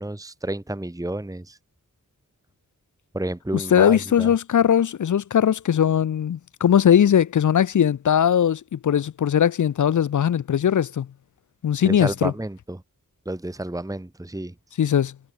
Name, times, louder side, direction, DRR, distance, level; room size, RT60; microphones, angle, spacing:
voice 1, 0.0-1.6 3.1-4.3 11.8-12.8 13.2-14.5, right 1 dB, 10° right, 1.4 m, -30 dB
voice 2, 3.5-11.1 11.6-12.3 14.8-15.1, left 9 dB, 65° left, 0.5 m, -20 dB
wide cardioid pair, 90°, 33 cm